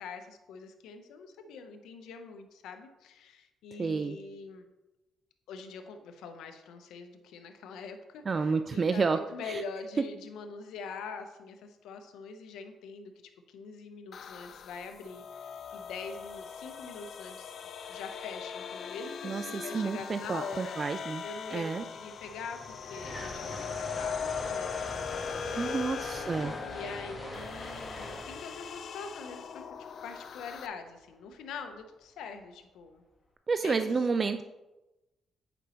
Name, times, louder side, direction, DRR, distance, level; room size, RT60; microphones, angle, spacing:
voice 1, 0.0-4.6 5.5-13.1 13.5-20.8 21.2-25.7 26.6-29.8 30.0-33.0 33.6-33.9, left 5 dB, 85° left, 6 dB, 0.7 m, -44 dB
voice 2, 3.8-4.2 8.3-9.6 19.2-21.2 21.5-21.8 25.6-26.5 33.5-34.4, right 4 dB, 35° right, 9 dB, 0.3 m, -30 dB
sound 1, 14.1-30.7, left 6 dB, 60° left, 0.3 m, -40 dB
sound 2, 21.9-30.1, left 1 dB, 25° left, 1.3 m, -42 dB
8.0 x 5.1 x 2.9 m, 1.0 s
cardioid pair, 90°, 0 cm